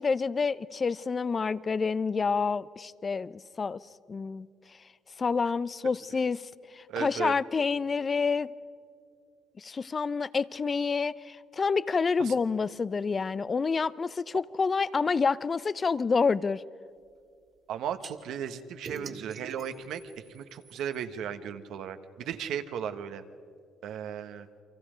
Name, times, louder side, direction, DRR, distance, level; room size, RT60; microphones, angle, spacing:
voice 1, 0.0-3.3 3.6-3.8 4.1-4.5 5.2-6.4 6.7-8.5 9.6-16.6, left 5 dB, 35° left, 18 dB, 0.6 m, -28 dB
voice 2, 6.9-7.3 12.2-12.3 17.7-20.0 20.3-23.2 23.8-24.5, right 8 dB, 75° right, 8 dB, 1.3 m, -36 dB
sound 1, 18.0-18.1 18.8-21.0, right 5 dB, 45° right, 2.4 m, -44 dB
30.0 x 24.0 x 5.1 m, 2.3 s
supercardioid pair, 80°, 0 cm